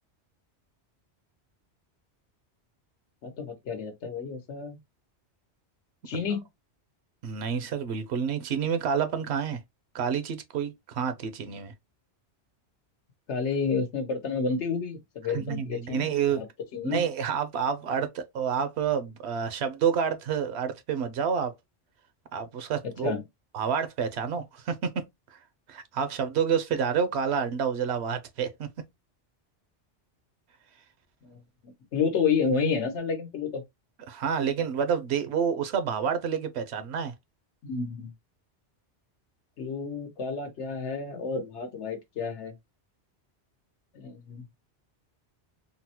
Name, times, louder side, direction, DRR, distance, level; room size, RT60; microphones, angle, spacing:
voice 1, 3.2-4.8 6.1-6.4 13.3-16.5 16.7-17.0 23.0-23.2 31.2-31.4 31.6-33.6 37.6-38.1 39.6-42.5 43.9-44.4, left 5 dB, 85° left, 1.2 m, -30 dB
voice 2, 7.2-9.6 9.9-11.7 15.3-16.4 16.8-21.5 22.3-23.1 23.5-25.0 25.3-25.4 25.7-28.7 34.1-37.1, right 7 dB, 75° right, 0.9 m, -28 dB
3.8 x 2.0 x 2.8 m
omnidirectional pair, 1.2 m